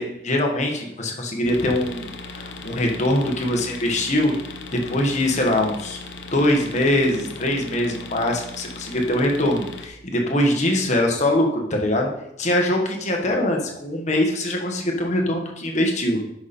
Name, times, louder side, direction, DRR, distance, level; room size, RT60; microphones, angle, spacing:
voice 1, 0.0-4.3 4.7-6.0 6.3-12.1 12.4-16.2, left 1 dB, 40° left, 1 dB, 1.6 m, -22 dB
sound 1, 1.4-9.9, left 3 dB, 80° left, 1.0 m, -38 dB
10.5 x 6.0 x 4.4 m, 0.81 s
head